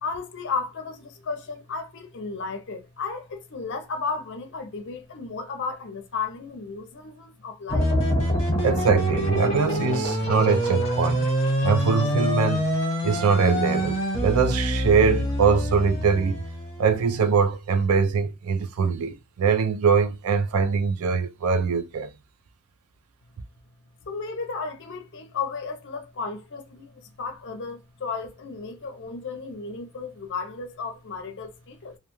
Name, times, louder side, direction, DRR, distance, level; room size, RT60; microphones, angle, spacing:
voice 1, 0.0-7.9 24.0-32.0, left 4 dB, 55° left, 0.5 m, -34 dB
sound 1, 7.7-17.3, equal, 25° left, 0.9 m, -25 dB
voice 2, 8.6-11.3 11.6-12.7 13.0-16.4 16.8-22.1, right 5 dB, 70° right, 0.4 m, -22 dB
2.4 x 2.2 x 2.9 m
head